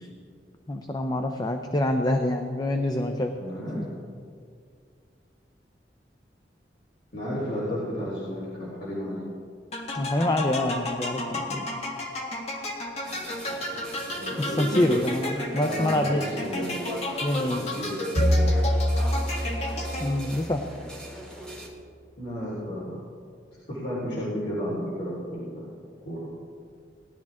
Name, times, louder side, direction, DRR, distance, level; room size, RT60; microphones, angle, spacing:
voice 1, 0.7-3.3 9.9-11.2 11.5-11.7 14.4-16.2 17.2-17.7 20.0-20.6, left 1 dB, 25° left, 5 dB, 0.6 m, -26 dB
voice 2, 3.4-3.9 7.1-9.2 14.2-14.8 15.6-16.8 17.5-18.0 22.2-23.0 23.7-25.6 26.1-26.2, equal, 65° left, -9 dB, 3.8 m, -32 dB
sound 1, 9.7-20.4, left 1 dB, 40° left, 1.7 m, -33 dB
sound 2, 13.0-21.7, equal, 5° left, 2.0 m, -42 dB
sound 3, 18.2-20.9, equal, 70° right, 2.1 m, -25 dB
18.5 x 11.5 x 3.6 m, 2.2 s
head